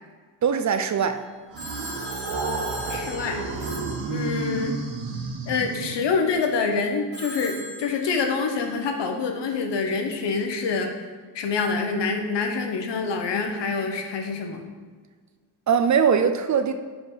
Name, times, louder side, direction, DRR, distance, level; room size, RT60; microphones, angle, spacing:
voice 1, 0.4-1.3 15.7-16.7, right 7 dB, 45° right, 0.4 m, -21 dB
Telephone, 1.5-4.8 7.1-8.6, right 1 dB, 25° right, 1.3 m, -39 dB
sound 1, 1.5-6.3, right 3 dB, 85° right, 1.1 m, -31 dB
voice 2, 2.9-3.4 4.1-4.7 5.5-10.9 11.3-14.6, left 4 dB, 75° left, 1.0 m, -26 dB
5.2 x 4.7 x 5.4 m
wide cardioid pair, 140°, 43 cm